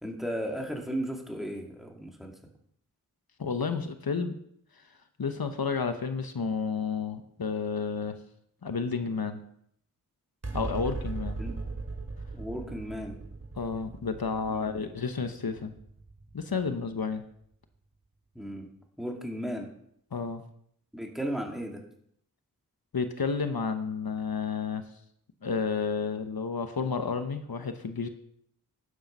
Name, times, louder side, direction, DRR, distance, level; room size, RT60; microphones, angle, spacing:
voice 1, 0.0-2.3 11.4-11.6 12.3-13.2 14.5-14.9 18.3-18.7 19.0-19.7 20.9-21.8, equal, ahead, 1 dB, 2.4 m, -35 dB
voice 2, 3.4-4.3 4.8-4.9 5.2-8.2 8.6-9.4 10.5-11.4 13.6-15.7 16.3-17.2 20.1-20.4 22.9-24.8 25.4-28.1, left 5 dB, 75° left, 8 dB, 1.0 m, -31 dB
sound 1, 10.4-17.1, right 3 dB, 45° right, 2.4 m, -39 dB
11.5 x 8.7 x 5.4 m, 0.69 s
wide cardioid pair, 60°, 36 cm